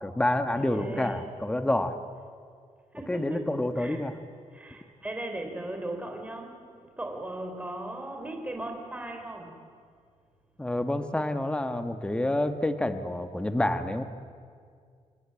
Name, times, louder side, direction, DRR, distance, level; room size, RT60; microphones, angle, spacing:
voice 1, 0.0-2.0 3.1-4.1 10.6-14.0, left 1 dB, 10° left, 9 dB, 1.3 m, -28 dB
voice 2, 0.6-1.4 2.9-3.5 3.8-4.1 4.5-6.7 7.0-9.6, right 1 dB, 10° right, 4 dB, 4.0 m, -37 dB
28.0 x 21.5 x 9.0 m, 2.1 s
wide cardioid pair, 145°, 12 cm